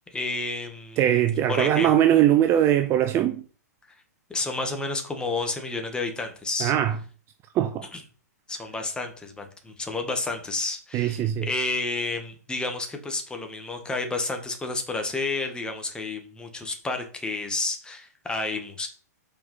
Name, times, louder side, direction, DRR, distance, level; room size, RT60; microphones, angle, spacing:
voice 1, 0.1-1.2 1.5-1.9 4.3-6.7 7.9-8.0 8.5-18.9, left 3 dB, 10° left, 1.6 m, -30 dB
voice 2, 1.0-3.4 6.6-7.0 7.5-7.9 10.9-11.5, right 11 dB, 25° right, 0.5 m, -21 dB
5.8 x 4.8 x 5.6 m
hypercardioid pair, 120°, 9 cm